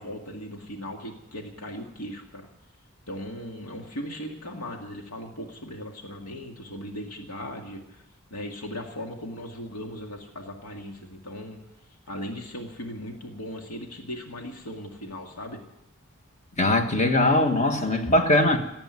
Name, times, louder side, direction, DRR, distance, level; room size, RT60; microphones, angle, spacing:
voice 1, 0.0-2.5 3.1-8.1 8.3-11.6 12.1-15.6, equal, 85° left, 2 dB, 2.1 m, -38 dB
voice 2, 16.6-18.6, left 1 dB, 30° left, 6 dB, 1.4 m, -21 dB
18.0 x 8.8 x 9.3 m, 0.89 s
head